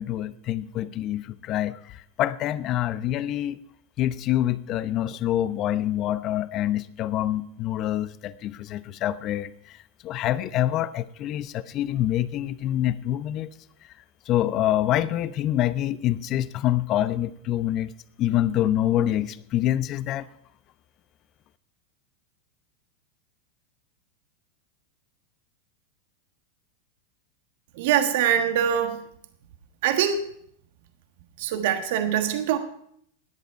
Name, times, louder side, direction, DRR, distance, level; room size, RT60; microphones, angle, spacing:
voice 1, 0.0-3.6 4.0-13.5 14.3-17.9 18.2-20.3, left 12 dB, 45° left, 15 dB, 0.8 m, -26 dB
voice 2, 27.8-29.0 29.8-30.3 31.4-32.6, right 9 dB, 65° right, 7 dB, 1.3 m, -23 dB
17.5 x 10.5 x 4.7 m, 0.69 s
hypercardioid pair, 95°, 0 cm